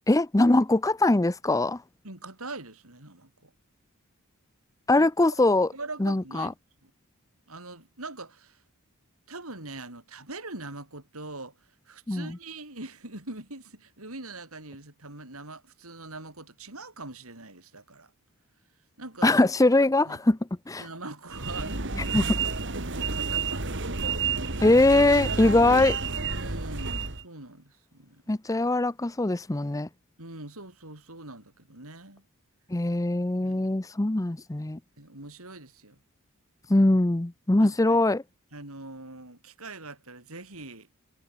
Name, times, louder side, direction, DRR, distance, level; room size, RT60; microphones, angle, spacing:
voice 1, 0.1-1.8 4.9-5.7 6.0-6.5 12.1-12.4 19.2-20.4 20.7-20.9 22.1-22.2 24.6-26.0 28.3-29.9 32.7-34.8 36.7-38.2, left 2 dB, 15° left, 0.6 m, -22 dB
voice 2, 2.0-3.5 5.0-5.1 5.7-6.5 6.8-6.9 7.5-8.6 9.3-11.6 11.9-18.1 19.0-19.4 20.1-20.2 20.8-23.9 26.3-28.2 30.2-32.2 33.4-33.7 35.0-36.0 37.6-38.0 38.5-40.9, right 2 dB, 75° right, 7.2 m, -43 dB
sound 1, 21.3-27.2, right 4 dB, 55° right, 3.2 m, -30 dB
head